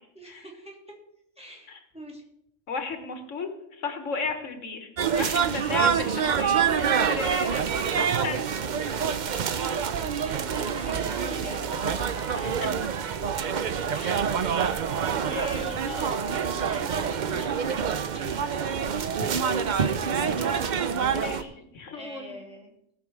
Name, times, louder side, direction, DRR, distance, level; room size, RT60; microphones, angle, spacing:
voice 1, 0.1-1.0 1.4-2.2 10.2-12.6 13.9-14.4 15.2-20.9 21.2-21.6 21.9-22.9, right 1 dB, 5° right, -2 dB, 2.6 m, -44 dB
voice 2, 2.7-3.5 3.8-4.9 5.1-8.4 12.3-12.4 14.0-14.1 15.3-16.1 21.1-22.4, left 4 dB, 85° left, 6 dB, 1.7 m, -34 dB
sound 1, 5.0-21.4, right 7 dB, 50° right, 0.6 m, -26 dB
18.5 x 6.1 x 4.7 m, 0.81 s
omnidirectional pair, 1.3 m